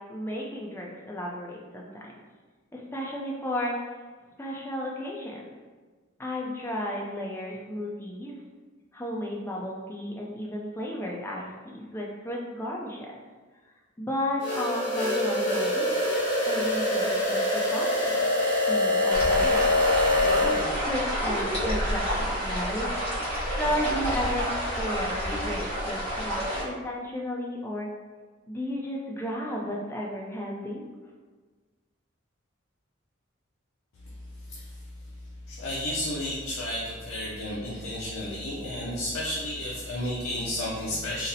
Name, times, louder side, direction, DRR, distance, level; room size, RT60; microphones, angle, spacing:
voice 1, 0.1-2.1 2.7-3.8 4.4-5.4 6.2-8.4 8.9-13.1 14.0-15.9 16.5-17.4 17.7-18.3 18.6-19.8 20.4-22.9 23.5-24.5 24.8-27.9 28.5-30.8, left 1 dB, 10° left, -2 dB, 0.3 m, -33 dB
sound 1, 14.4-20.6, left 1 dB, 55° left, 1.1 m, -24 dB
sound 2, 19.1-26.6, equal, 30° left, 1.0 m, -29 dB
voice 2, 33.9-41.3, left 1 dB, 80° left, -5 dB, 0.5 m, -33 dB
4.0 x 2.0 x 2.6 m, 1.4 s
head